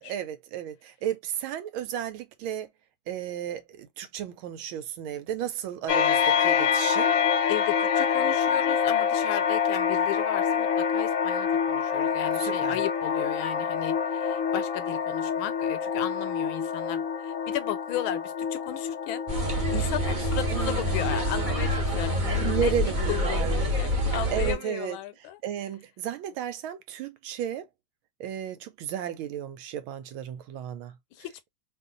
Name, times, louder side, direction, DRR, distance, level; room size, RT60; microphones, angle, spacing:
voice 1, 0.0-2.7 3.1-7.1 12.4-12.8 20.5-21.3 22.4-23.7 24.3-25.0 25.4-27.7 28.2-31.0, right 9 dB, 90° right, 1.5 m, -33 dB
sound 1, 5.9-23.1, left 7 dB, 65° left, 0.8 m, -27 dB
voice 2, 7.5-22.7 23.1-25.4 31.1-31.5, left 13 dB, 85° left, 1.4 m, -35 dB
sound 2, 19.3-24.5, equal, 40° right, 0.7 m, -27 dB
3.2 x 2.4 x 3.7 m
omnidirectional pair, 2.2 m